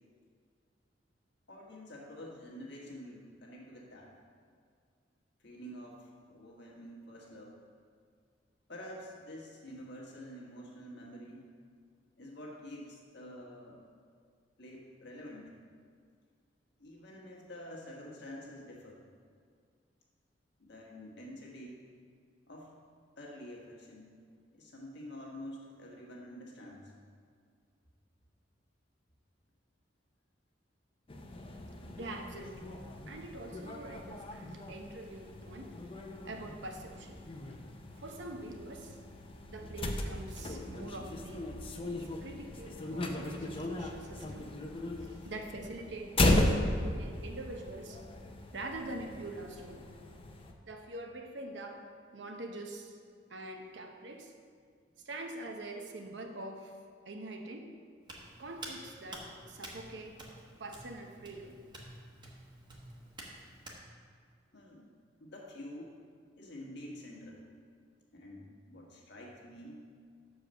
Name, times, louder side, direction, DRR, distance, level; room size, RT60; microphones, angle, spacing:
voice 1, 1.5-4.1 5.4-7.6 8.7-11.5 12.2-13.8 14.6-15.5 16.8-19.0 20.6-21.8 22.5-22.7 23.2-24.1 24.5-26.9 64.5-64.9 65.2-66.0 66.3-67.4 68.1-69.8, equal, 65° left, -2 dB, 1.5 m, -48 dB
sound 1, 31.1-50.5, left 1 dB, 30° left, 0.6 m, -36 dB
voice 2, 32.0-32.8 33.1-37.3 38.0-39.0 39.5-41.5 42.2-44.5 45.0-48.0 48.5-49.9 50.6-53.0 53.3-54.3 55.0-56.8 57.0-57.7 58.4-60.2 60.6-61.6, right 2 dB, 70° right, 3 dB, 0.8 m, -44 dB
Hands, 58.0-63.8, right 1 dB, 25° right, 1.0 m, -49 dB
6.5 x 4.8 x 6.3 m, 2.1 s
head